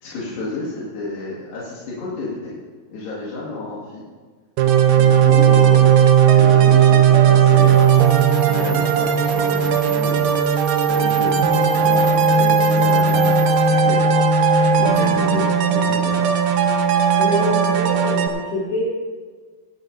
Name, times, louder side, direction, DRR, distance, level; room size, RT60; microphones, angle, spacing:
voice 1, 0.0-2.6 2.9-4.0 4.9-8.0 8.5-10.3 10.9-14.0 14.7-16.3, left 3 dB, 85° left, -8 dB, 4.2 m, -30 dB
sound 1, 4.6-18.3, right 7 dB, 75° right, 2.3 m, -16 dB
sound 2, 7.5-13.8, right 6 dB, 55° right, 3.9 m, -39 dB
voice 2, 17.2-18.8, equal, 55° left, -5 dB, 6.2 m, -25 dB
17.5 x 13.5 x 2.7 m, 1.5 s
omnidirectional pair, 4.7 m